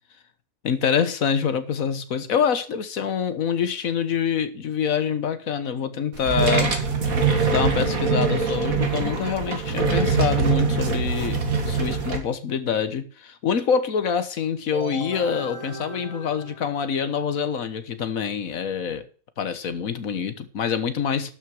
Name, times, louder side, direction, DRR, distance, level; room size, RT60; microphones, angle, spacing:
voice 1, 0.6-6.7 7.5-19.1 19.4-21.4, left 7 dB, 75° left, 1.6 m, -26 dB
sound 1, 6.1-12.2, right 5 dB, 85° right, 2.4 m, -23 dB
sound 2, 14.7-17.4, equal, 35° left, 3.4 m, -37 dB
11.5 x 6.4 x 6.4 m
omnidirectional pair, 1.4 m